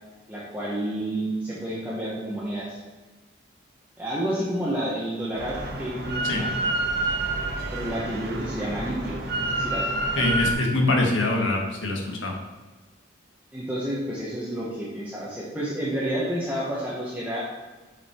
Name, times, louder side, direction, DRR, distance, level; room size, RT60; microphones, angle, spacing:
voice 1, 0.3-2.8 4.0-6.5 7.7-9.9 10.2-10.3 13.5-17.4, right 1 dB, 10° right, -8 dB, 1.1 m, -30 dB
Drill, 5.4-10.5, right 2 dB, 50° right, 1.2 m, -28 dB
voice 2, 10.2-12.3, left 2 dB, 75° left, 1 dB, 1.5 m, -24 dB
7.2 x 5.5 x 4.5 m, 1.3 s
head